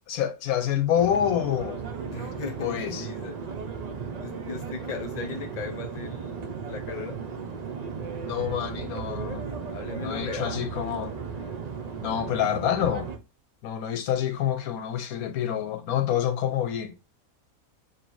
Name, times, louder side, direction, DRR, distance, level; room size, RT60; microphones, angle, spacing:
voice 1, 0.1-1.8 2.6-3.1 8.2-9.5 10.0-11.1 12.0-13.1 13.6-16.9, left 10 dB, 85° left, 1.1 m, -27 dB
sound 1, 1.0-13.2, right 5 dB, 65° right, 0.4 m, -35 dB
voice 2, 2.1-3.4 4.2-7.2 9.7-10.5, left 5 dB, 35° left, 0.8 m, -37 dB
3.2 x 2.7 x 4.5 m
omnidirectional pair, 1.5 m